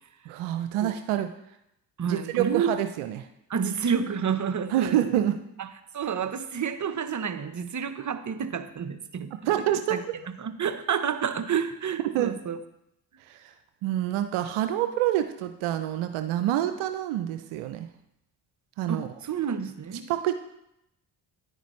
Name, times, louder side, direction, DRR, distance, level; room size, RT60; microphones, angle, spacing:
voice 1, 0.3-1.3 2.0-3.3 4.7-5.4 9.5-10.0 12.0-12.3 13.3-13.5 13.8-17.9 18.8-19.1 20.1-20.3, right 12 dB, 75° right, 8 dB, 0.7 m, -27 dB
voice 2, 2.0-2.7 3.5-5.0 5.6-5.7 5.9-10.0 10.4-12.6 18.9-20.1, right 7 dB, 35° right, 10 dB, 1.0 m, -29 dB
10.0 x 9.0 x 3.2 m, 0.81 s
hypercardioid pair, 45°, 50 cm